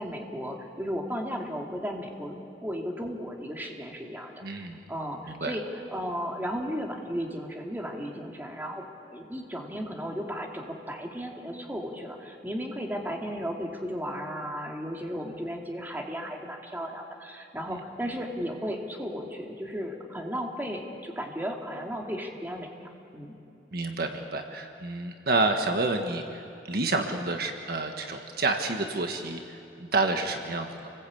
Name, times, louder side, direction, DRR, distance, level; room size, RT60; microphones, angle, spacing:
voice 1, 0.0-8.8 9.1-22.7 23.1-23.4, equal, 10° right, 0 dB, 2.5 m, -35 dB
voice 2, 4.4-4.8 5.3-5.5 17.7-17.8 23.7-30.9, right 2 dB, 55° right, 4 dB, 1.5 m, -29 dB
29.0 x 20.5 x 8.6 m, 2.8 s
head